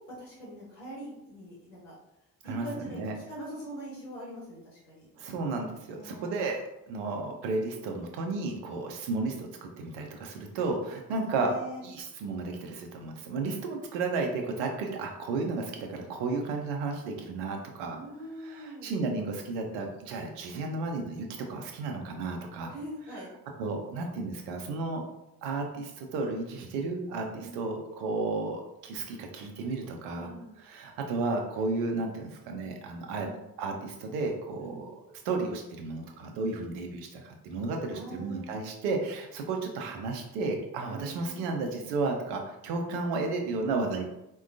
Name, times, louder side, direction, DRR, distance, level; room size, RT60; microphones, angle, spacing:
voice 1, 0.2-1.9 2.4-5.1 5.9-6.5 11.1-11.8 17.9-19.0 22.7-23.3 27.3-27.6 30.1-30.5 33.2-33.4 34.6-34.8 37.9-38.5 40.9-41.4, right 1 dB, 80° left, -7 dB, 1.4 m, -43 dB
voice 2, 2.5-3.1 5.2-11.5 11.8-18.0 18.4-22.7 23.6-25.0 25.4-30.3 30.6-33.3 33.6-44.1, right 3 dB, 65° right, 3 dB, 0.7 m, -33 dB
4.3 x 2.3 x 2.5 m, 0.89 s
figure-of-eight pair, 45°, 46 cm